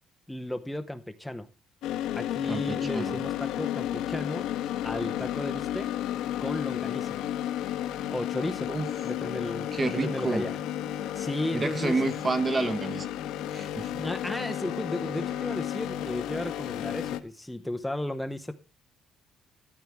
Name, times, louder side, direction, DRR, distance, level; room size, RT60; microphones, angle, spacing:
voice 1, 0.3-1.5 2.1-4.5 4.8-5.9 6.4-7.2 8.1-8.7 9.0-10.5 11.1-12.0 14.0-18.5, left 1 dB, 5° left, 0.6 m, -34 dB
sound 1, 1.8-17.2, left 11 dB, 85° left, 1.1 m, -32 dB
voice 2, 2.5-3.2 8.7-8.9 9.7-10.5 11.5-13.1 13.5-14.0, right 3 dB, 20° right, 1.0 m, -29 dB
14.0 x 10.5 x 3.4 m
cardioid pair, 165°, 0 cm